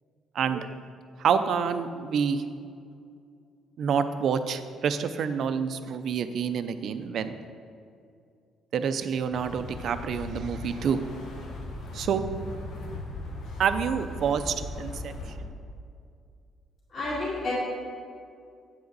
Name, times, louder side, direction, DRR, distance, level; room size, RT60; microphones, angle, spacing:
voice 1, 0.3-0.7 1.2-2.4 3.8-7.3 8.7-11.0 11.9-12.2 13.6-15.5, right 7 dB, 50° right, 10 dB, 0.4 m, -28 dB
sound 1, 9.3-15.4, left 2 dB, 75° left, 1.4 m, -38 dB
voice 2, 16.9-17.5, left 2 dB, 50° left, -10 dB, 2.3 m, -30 dB
9.0 x 7.7 x 4.0 m, 2.3 s
cardioid pair, 160°, 0 cm